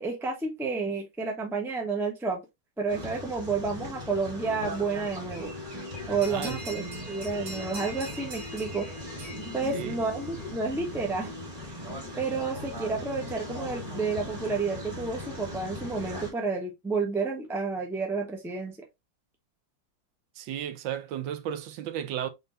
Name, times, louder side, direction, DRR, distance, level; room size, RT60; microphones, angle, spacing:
voice 1, 0.0-2.4 2.8-5.5 6.1-8.9 9.5-11.3 12.2-18.8, right 4 dB, ahead, 0.6 m, -30 dB
sound 1, 2.9-16.3, left 1 dB, 20° right, 2.8 m, -39 dB
sound 2, 6.2-10.5, right 1 dB, 60° right, 2.3 m, -43 dB
voice 2, 6.2-6.6 9.7-10.0 20.4-22.3, right 10 dB, 80° right, 1.3 m, -34 dB
4.1 x 4.0 x 2.6 m
omnidirectional pair, 2.0 m